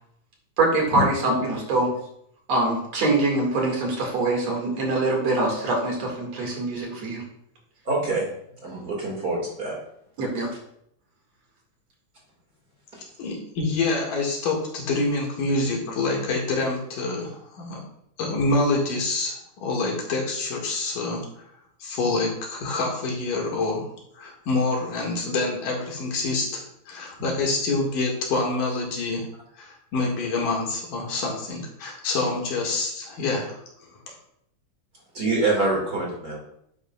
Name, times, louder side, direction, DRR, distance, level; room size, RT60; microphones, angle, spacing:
voice 1, 0.6-1.9 2.5-7.2 10.2-10.5, right 2 dB, 60° right, 0 dB, 3.1 m, -24 dB
voice 2, 7.9-8.3 8.6-9.8 35.1-36.4, right 2 dB, 35° right, -2 dB, 2.2 m, -25 dB
voice 3, 13.2-17.8 18.2-21.2 21.8-23.9 24.1-29.3 29.6-33.6 34.1-34.2, left 3 dB, 85° left, -1 dB, 3.5 m, -26 dB
10.5 x 8.2 x 2.4 m, 0.73 s
omnidirectional pair, 3.6 m